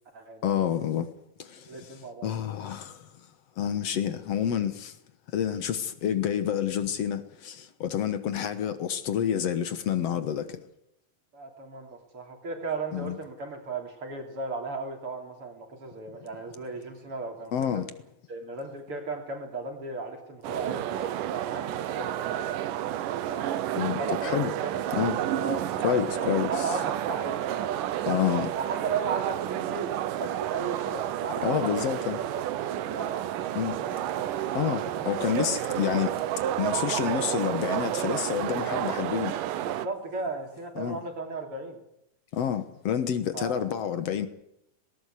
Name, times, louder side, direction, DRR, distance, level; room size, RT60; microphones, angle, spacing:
voice 1, 0.4-1.1 1.4-1.9 2.2-3.1 3.6-5.0 5.3-10.6 12.9-13.2 17.5-17.9 23.8-24.5 24.9-25.2 25.8-26.5 28.1-28.5 31.4-32.2 33.6-33.8 34.6-36.1 36.6-39.3 40.8-41.0 42.3-44.3, left 9 dB, 60° left, 1.9 m, -28 dB
voice 2, 1.6-2.3 11.3-17.9 18.3-23.5 24.0-24.8 25.1-27.7 28.5-32.0 32.3-34.2 34.6-34.8 39.6-41.8 43.3-43.9, right 3 dB, 40° right, 3.9 m, -36 dB
sound 1, 20.4-39.9, right 12 dB, 75° right, 2.5 m, -30 dB
19.5 x 18.5 x 8.3 m
omnidirectional pair, 4.0 m